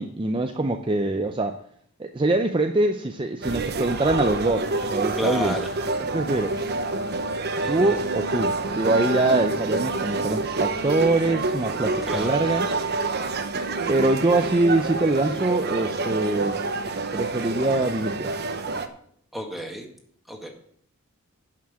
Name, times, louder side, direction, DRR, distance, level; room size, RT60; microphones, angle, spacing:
voice 1, 0.0-1.6 2.0-5.6 6.0-6.7 7.7-12.7 13.9-16.6 17.1-18.3, right 2 dB, 25° right, 6 dB, 0.6 m, -24 dB
sound 1, 3.4-18.9, right 3 dB, 50° right, 0.9 m, -27 dB
voice 2, 5.2-5.7 7.6-8.0 12.1-12.3 19.3-19.9 20.3-20.5, equal, ahead, 1 dB, 1.8 m, -31 dB
11.0 x 6.0 x 7.4 m, 0.65 s
head